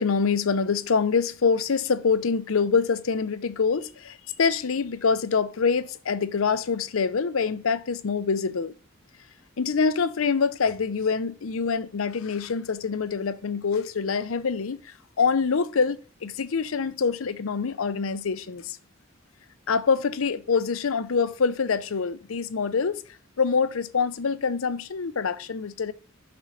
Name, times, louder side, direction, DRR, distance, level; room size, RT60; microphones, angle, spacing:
voice 1, 0.0-8.7 9.6-18.8 19.7-23.0 23.4-25.9, left 5 dB, 85° left, 0.6 m, -25 dB
6.1 x 4.2 x 5.6 m
head